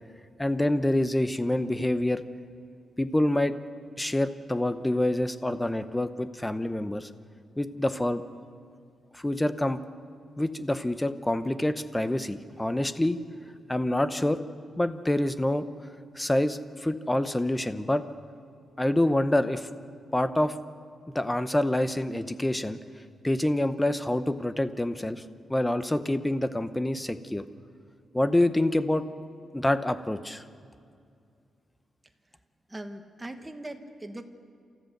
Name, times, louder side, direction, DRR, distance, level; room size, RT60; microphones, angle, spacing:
voice 1, 0.4-2.2 3.0-3.5 4.0-7.1 7.6-8.2 9.1-9.8 10.4-13.2 13.7-14.4 14.8-15.7 16.1-18.0 18.8-19.7 20.1-20.5 21.1-22.8 23.2-25.2 25.5-27.4 28.1-29.0 29.5-30.4, left 1 dB, 10° left, 11 dB, 0.7 m, -26 dB
voice 2, 32.7-34.2, right 1 dB, 15° right, 6 dB, 1.2 m, -40 dB
28.0 x 14.0 x 6.6 m, 2.4 s
wide cardioid pair, 155°, 0 cm